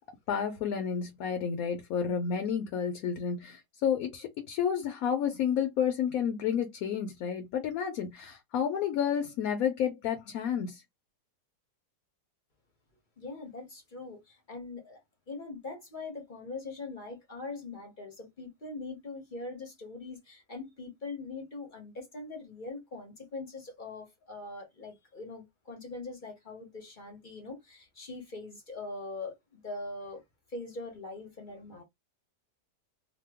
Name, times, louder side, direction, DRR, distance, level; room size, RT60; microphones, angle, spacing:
voice 1, 0.3-10.8, left 8 dB, 65° left, 1.0 m, -30 dB
voice 2, 13.2-15.0 15.3-30.2 30.5-31.8, left 3 dB, 40° left, 0.7 m, -42 dB
2.8 x 2.2 x 3.4 m
omnidirectional pair, 1.8 m